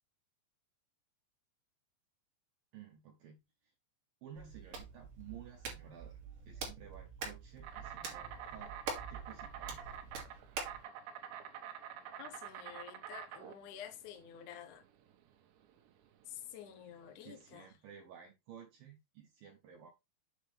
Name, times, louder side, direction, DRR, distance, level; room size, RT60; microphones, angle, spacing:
voice 1, 2.7-3.7 4.2-8.7 9.1-9.9 16.9-19.9, right 8 dB, 85° right, 2.0 m, -54 dB
Hands, 4.4-10.8, right 5 dB, 50° right, 3.3 m, -45 dB
Insect, 7.6-17.6, right 9 dB, 70° right, 3.2 m, -48 dB
voice 2, 12.2-14.8 16.3-17.7, left 9 dB, 80° left, 1.7 m, -50 dB
8.1 x 6.2 x 3.3 m
omnidirectional pair, 5.5 m